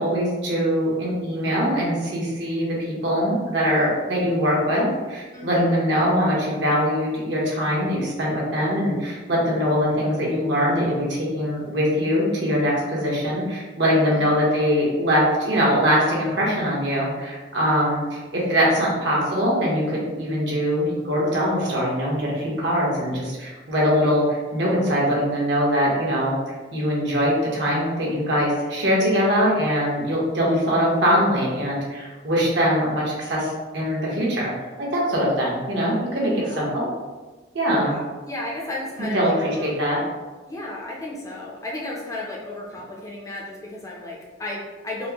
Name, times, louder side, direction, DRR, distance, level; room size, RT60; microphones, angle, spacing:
voice 1, 0.0-34.5 34.8-36.9 37.5-38.0 39.1-40.0, equal, 70° right, -4 dB, 1.0 m, -22 dB
voice 2, 13.9-14.3 36.3-36.7 37.7-39.7 40.5-45.1, left 2 dB, 15° left, -3 dB, 0.5 m, -34 dB
4.4 x 2.1 x 2.8 m, 1.3 s
head